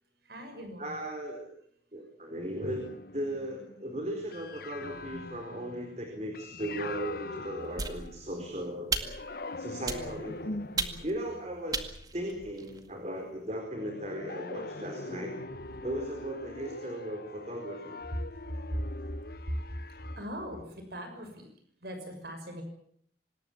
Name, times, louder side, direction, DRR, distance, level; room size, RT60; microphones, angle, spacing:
voice 1, 0.3-0.9 18.5-18.7 20.2-20.7 20.9-21.5 21.8-22.6, equal, 60° right, 6 dB, 6.3 m, -41 dB
voice 2, 0.8-1.5 1.9-9.1 9.6-10.6 11.0-11.8 12.1-15.4 15.8-18.0, right 1 dB, 35° right, 3 dB, 4.3 m, -37 dB
sound 1, 2.6-8.5 9.0-12.9 13.7-20.3, left 2 dB, 55° left, 1.0 m, -43 dB
sound 2, 7.8-8.4 8.9-9.4 9.9-10.3 10.8-11.2 11.7-12.9, right 4 dB, 20° right, 2.0 m, -35 dB
26.0 x 19.5 x 7.3 m, 0.66 s
head